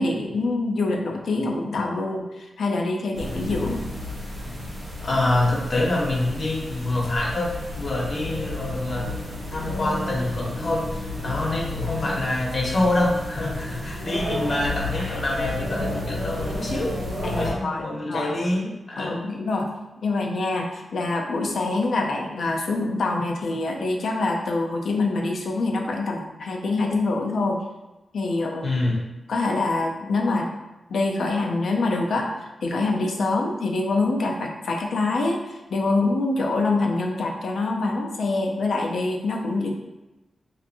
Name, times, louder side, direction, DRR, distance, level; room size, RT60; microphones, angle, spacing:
voice 1, 0.0-3.8 17.2-18.3 19.0-19.7 20.0-27.6 28.1-28.7 29.3-30.5 30.9-32.3 32.6-39.8, left 2 dB, 80° left, 1 dB, 0.4 m, -25 dB
sound 1, 3.1-17.5, left 1 dB, 85° right, 1.1 m, -32 dB
voice 2, 5.0-9.1 9.5-17.0 17.4-19.3 28.6-29.0, left 2 dB, 55° left, -2 dB, 0.7 m, -26 dB
2.7 x 2.4 x 2.5 m, 1.1 s
cardioid pair, 65°, 0 cm